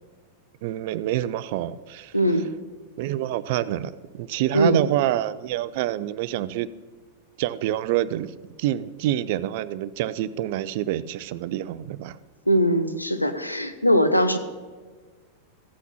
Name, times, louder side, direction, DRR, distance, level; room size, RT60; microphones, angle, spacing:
voice 1, 0.6-2.1 3.0-6.7 7.4-8.3 8.6-12.2, right 13 dB, 50° right, 17 dB, 0.4 m, -27 dB
voice 2, 2.1-2.5 4.5-4.8 12.5-14.4, equal, 90° left, 9 dB, 0.7 m, -21 dB
14.5 x 5.8 x 5.7 m, 1.5 s
figure-of-eight pair, 90°, 0 cm